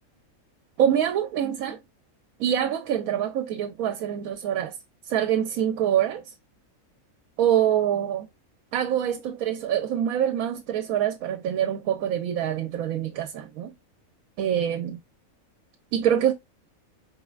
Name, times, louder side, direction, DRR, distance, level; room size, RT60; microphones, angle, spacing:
voice 1, 0.8-1.8 2.4-4.7 5.0-6.2 7.4-8.3 8.7-13.7 14.4-15.0 15.9-16.3, right 10 dB, 85° right, 1.0 m, -25 dB
4.2 x 4.0 x 2.3 m
omnidirectional pair, 1.5 m